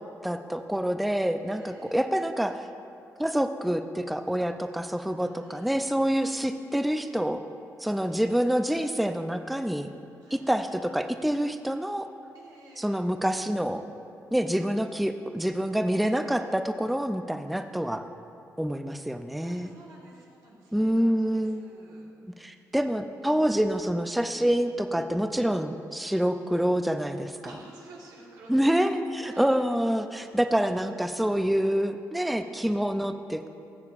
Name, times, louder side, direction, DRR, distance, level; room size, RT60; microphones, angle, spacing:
voice 1, 0.2-2.7 3.2-7.4 7.8-9.9 10.3-12.1 12.8-13.8 14.3-18.0 18.6-19.7 20.7-21.8 22.4-27.3 28.5-33.5, equal, ahead, 8 dB, 0.3 m, -27 dB
voice 2, 1.4-2.1 5.2-5.7 6.1-6.5 8.0-8.5 10.2-10.5 12.3-12.9 17.5-17.6 19.4-22.7 27.4-28.7 29.2-29.6 32.2-32.5, right 2 dB, 90° right, -3 dB, 1.6 m, -52 dB
13.5 x 6.7 x 2.4 m, 2.6 s
cardioid pair, 90°, 6 cm